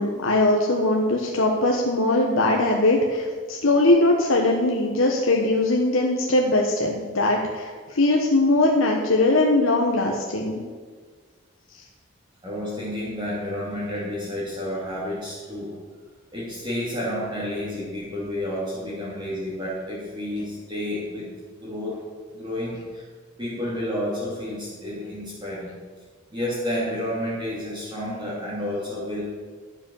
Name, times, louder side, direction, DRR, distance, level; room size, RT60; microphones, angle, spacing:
voice 1, 0.0-10.6, left 2 dB, 80° left, 0 dB, 1.2 m, -21 dB
voice 2, 12.4-15.8 16.3-21.3 21.6-22.0 22.3-23.1 23.4-25.7 26.3-29.2, left 1 dB, 20° right, -10 dB, 2.9 m, -30 dB
11.5 x 7.3 x 7.1 m, 1.5 s
head